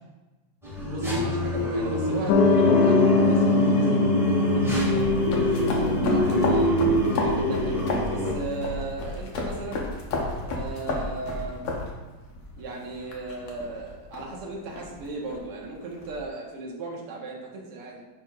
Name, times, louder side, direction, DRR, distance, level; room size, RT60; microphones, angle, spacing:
sound 1, 0.6-8.3, equal, ahead, 1.6 m, -26 dB
voice 1, 0.9-5.2 5.5-6.8 7.2-7.8 8.1-9.9 10.4-11.6 12.6-18.0, right 2 dB, 55° right, -2 dB, 1.8 m, -37 dB
Piano, 2.3-8.8, left 3 dB, 80° left, 1.8 m, -24 dB
sound 2, 5.0-16.2, left 2 dB, 60° left, 1.7 m, -33 dB
10.5 x 5.5 x 2.6 m, 1.1 s
omnidirectional pair, 3.9 m